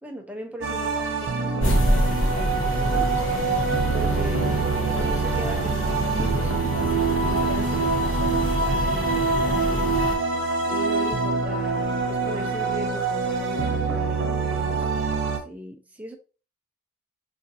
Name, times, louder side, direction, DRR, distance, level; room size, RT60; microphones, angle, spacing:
voice 1, 0.0-3.1 3.9-9.9 10.7-16.2, equal, 5° right, 0.5 m, -39 dB
sound 1, 0.6-15.4, right 4 dB, 55° right, 0.7 m, -25 dB
sound 2, 1.6-10.2, equal, 60° left, 1.1 m, -26 dB
4.9 x 2.5 x 2.7 m
head